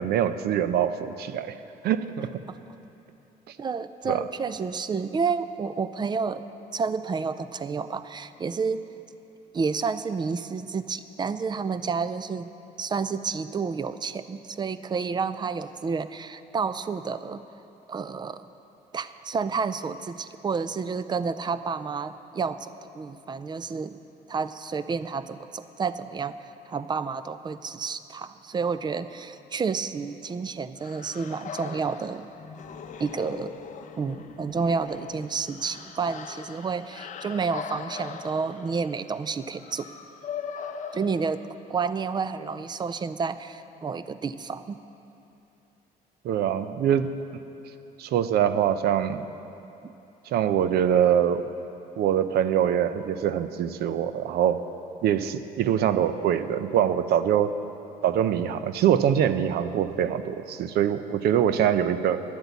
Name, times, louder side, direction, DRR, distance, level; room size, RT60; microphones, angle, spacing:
voice 1, 0.0-1.5 1.8-2.4 4.0-4.2 46.2-47.1 48.0-49.2 50.3-51.4 52.0-54.6 55.0-57.5 58.0-62.2, right 9 dB, 70° right, 12 dB, 0.6 m, -24 dB
voice 2, 3.6-6.4 6.7-8.8 9.5-12.5 12.8-17.4 17.9-18.5 18.9-24.0 24.3-26.3 26.7-32.3 33.0-33.5 34.0-39.9 40.9-41.4 41.7-44.8 49.8-49.9, right 5 dB, 25° right, 13 dB, 0.4 m, -30 dB
sound 1, 30.8-41.9, left 6 dB, 50° left, 0.7 m, -40 dB
10.5 x 8.1 x 8.2 m, 2.8 s
cardioid pair, 110°, 17 cm